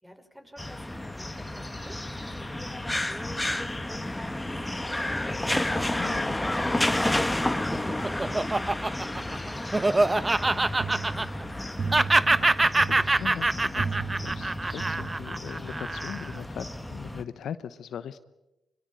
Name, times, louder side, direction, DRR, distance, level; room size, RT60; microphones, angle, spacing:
voice 1, 0.0-5.7 6.5-11.5, equal, 5° right, 7 dB, 5.5 m, -49 dB
sound 1, 0.6-17.2, left 1 dB, 10° left, 1.9 m, -31 dB
voice 2, 5.9-6.4 12.4-18.2, left 8 dB, 70° left, 13 dB, 0.9 m, -40 dB
Laughter, 7.4-11.6 11.9-16.4, right 2 dB, 25° right, 1.1 m, -25 dB
sound 2, 10.4-15.7, right 5 dB, 40° right, 0.9 m, -37 dB
23.5 x 23.0 x 9.0 m, 0.95 s
supercardioid pair, 50°, 0 cm